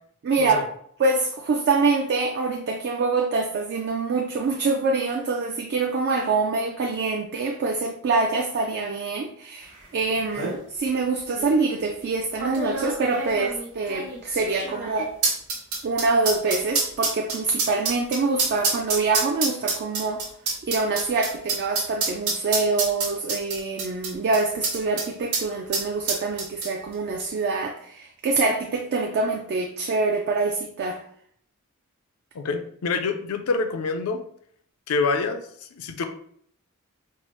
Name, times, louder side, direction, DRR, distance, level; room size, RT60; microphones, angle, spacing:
voice 1, 0.2-0.7 1.0-15.1 15.8-20.2 20.6-31.0, right 3 dB, 50° right, 3 dB, 0.3 m, -25 dB
sound 1, 9.8-9.9 10.2-10.6 11.3-11.5 12.4-25.1 25.3-25.4 25.7-26.9 27.2-27.3, right 3 dB, 85° right, 1.2 m, -27 dB
voice 2, 32.3-34.2 34.9-35.4 35.7-36.1, left 4 dB, 75° left, 7 dB, 0.4 m, -26 dB
4.5 x 2.0 x 2.9 m, 0.64 s
head